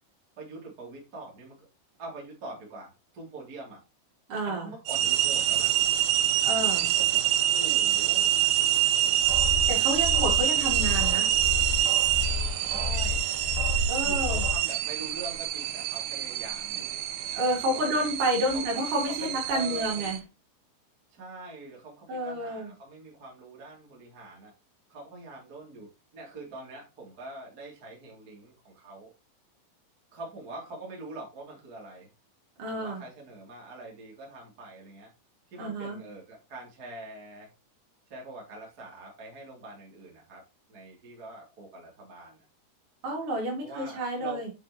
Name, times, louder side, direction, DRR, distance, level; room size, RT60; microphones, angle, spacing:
voice 1, 0.4-1.7 2.0-3.8 4.4-5.8 7.0-8.3 10.5-11.5 12.7-13.3 14.0-17.0 17.7-18.0 18.5-18.6 19.2-20.1 21.1-24.5 24.9-29.1 30.1-32.1 32.7-35.1 35.5-37.5 38.1-40.4 40.7-42.4 43.6-44.4, right 2 dB, 25° right, -2 dB, 2.7 m, -44 dB
voice 2, 4.3-4.7 6.4-6.9 9.7-11.3 13.9-14.4 17.3-20.2 22.1-22.7 32.6-33.0 35.6-36.0 43.0-44.5, right 1 dB, 50° right, -1 dB, 4.5 m, -30 dB
sound 1, 4.9-20.2, right 12 dB, 80° right, 3.0 m, -26 dB
sound 2, 9.2-14.5, left 4 dB, 25° left, 0.7 m, -32 dB
8.9 x 6.1 x 2.9 m, 0.28 s
omnidirectional pair, 4.9 m